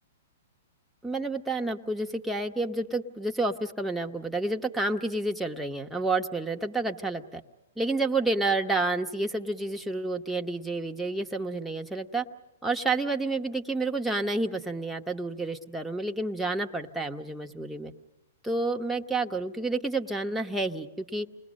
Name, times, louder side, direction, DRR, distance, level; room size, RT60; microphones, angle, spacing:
voice 1, 1.0-7.4 7.8-12.3 12.6-17.9 18.4-21.3, right 2 dB, ahead, 1 dB, 1.0 m, -29 dB
28.5 x 20.5 x 6.5 m, 0.97 s
hypercardioid pair, 130°, 0 cm